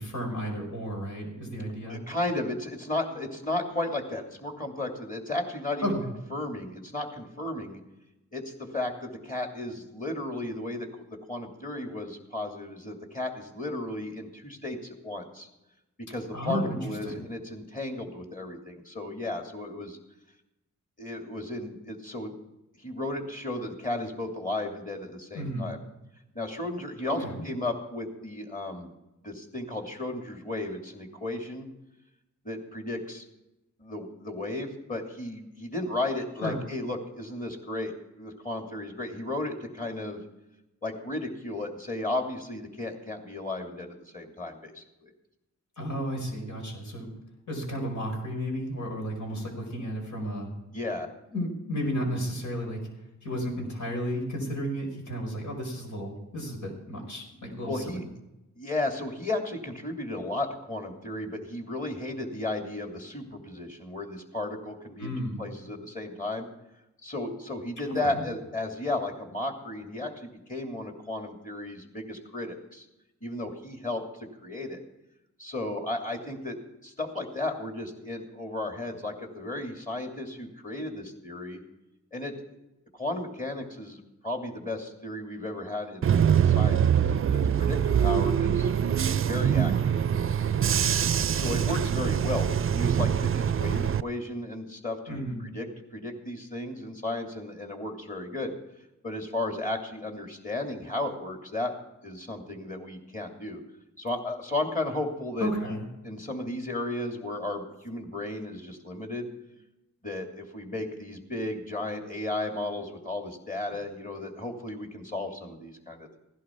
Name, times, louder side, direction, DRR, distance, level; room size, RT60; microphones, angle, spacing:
voice 1, 0.0-2.0 5.8-6.1 16.3-16.8 17.0-17.2 25.3-25.7 27.1-27.4 36.4-36.6 45.8-47.2 47.5-50.5 51.3-52.8 53.2-58.0 65.0-65.4 67.9-68.2 95.1-95.4 105.4-105.8, equal, 80° left, 0 dB, 5.2 m, -33 dB
voice 2, 1.9-5.9 6.3-7.8 8.3-15.5 16.1-20.0 21.0-22.3 22.8-25.8 26.3-27.2 27.4-28.9 29.2-31.7 32.4-33.2 33.8-40.2 40.8-45.1 50.7-51.1 57.7-58.0 58.6-65.1 65.4-66.5 67.0-72.9 73.2-74.0 74.4-74.8 75.4-76.6 76.8-81.6 82.1-82.3 83.0-88.7 89.2-90.0 91.3-95.7 95.9-98.5 99.0-101.7 102.0-103.6 104.0-109.3 110.0-116.1, left 2 dB, 25° left, 3 dB, 2.9 m, -34 dB
Bus / Engine, 86.0-94.0, right 8 dB, 45° right, 0.5 m, -24 dB
16.0 x 11.5 x 4.7 m, 0.92 s
cardioid pair, 60°, 30 cm